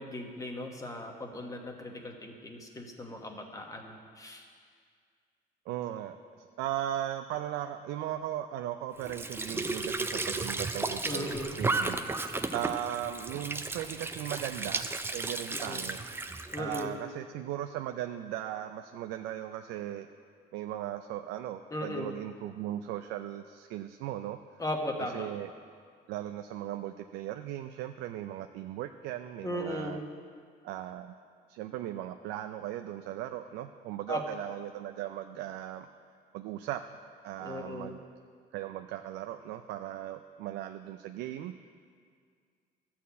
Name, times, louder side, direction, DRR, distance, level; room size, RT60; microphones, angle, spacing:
voice 1, 0.0-4.4 11.0-11.6 15.5-15.8 16.5-17.0 21.7-22.1 24.6-25.3 29.4-30.0 34.1-34.2 37.4-37.9, left 1 dB, 20° left, 2 dB, 1.2 m, -37 dB
voice 2, 5.7-11.3 11.6-12.0 12.5-16.0 16.6-20.1 20.5-24.4 25.0-25.5 26.1-30.0 30.6-31.1 31.5-35.9 36.3-36.8 37.2-38.0 38.5-41.5, right 12 dB, 90° right, 7 dB, 0.4 m, -37 dB
Squeak / Sink (filling or washing) / Trickle dribble, 9.0-16.9, right 3 dB, 15° right, 0.5 m, -34 dB
12.5 x 4.3 x 8.3 m, 2.1 s
cardioid pair, 110°, 17 cm